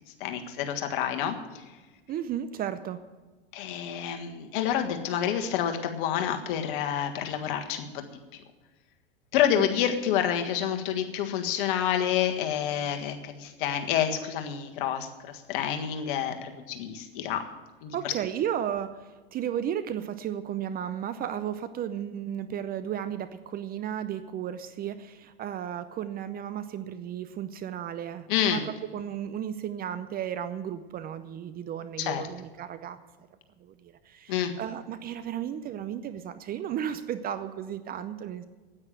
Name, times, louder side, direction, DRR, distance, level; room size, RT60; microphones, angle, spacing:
voice 1, 0.2-1.3 3.5-8.0 9.3-15.1 15.5-17.4 17.8-18.1 28.3-28.6 32.0-32.2 34.3-34.5, left 9 dB, 60° left, 5 dB, 1.6 m, -28 dB
voice 2, 2.1-3.0 9.5-9.9 17.9-33.0 33.6-38.4, right 10 dB, 30° right, 12 dB, 0.6 m, -34 dB
9.6 x 9.0 x 8.6 m, 1.3 s
hypercardioid pair, 100°, 30 cm